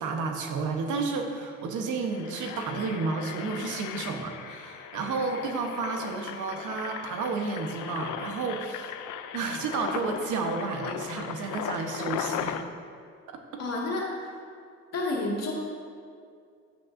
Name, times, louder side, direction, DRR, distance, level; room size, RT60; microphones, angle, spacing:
voice 1, 0.0-8.9 9.3-12.6 13.3-13.6, right 4 dB, 80° right, 4 dB, 1.0 m, -31 dB
Engine, 1.2-1.4 1.9-12.6, left 10 dB, 80° left, 0.5 m, -37 dB
voice 2, 13.6-14.1 14.9-15.5, left 2 dB, 60° left, -3 dB, 2.0 m, -29 dB
10.5 x 8.6 x 2.6 m, 2.3 s
cardioid pair, 90°, 30 cm